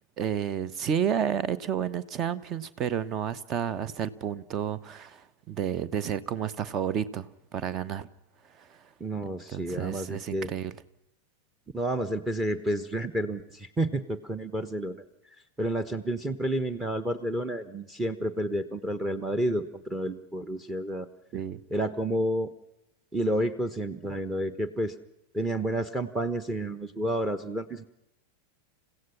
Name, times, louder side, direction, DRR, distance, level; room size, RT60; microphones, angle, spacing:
voice 1, 0.2-8.1 8.6-8.8 9.5-10.7 21.3-21.6, right 8 dB, 30° right, 18 dB, 1.1 m, -31 dB
voice 2, 9.0-10.5 11.7-15.0 15.6-21.1 21.7-22.5 23.1-25.0 25.3-27.9, right 1 dB, 10° right, 9 dB, 1.2 m, -30 dB
29.0 x 16.5 x 5.8 m, 0.82 s
figure-of-eight pair, 90°, 0 cm